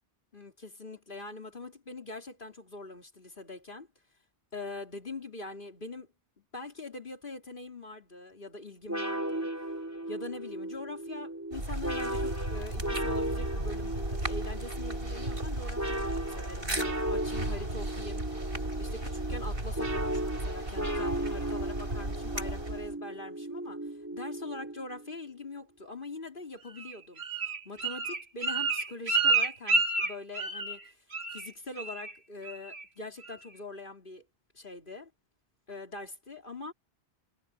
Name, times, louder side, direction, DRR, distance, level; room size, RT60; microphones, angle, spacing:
voice 1, 0.3-3.9 4.5-6.1 6.5-9.5 10.1-18.5 18.8-23.8 24.1-27.4 27.6-30.8 31.3-34.2 34.5-35.1 35.7-36.7, left 2 dB, 55° left, 3.5 m, -43 dB
sound 1, 8.9-25.1, right 1 dB, 15° right, 2.7 m, -36 dB
sound 2, 11.5-22.9, right 1 dB, 65° right, 5.7 m, -35 dB
Bird, 26.8-30.8 31.1-31.5 31.8-32.1 32.4-32.8 33.2-33.3, right 3 dB, 80° right, 2.6 m, -29 dB
omnidirectional pair, 1.1 m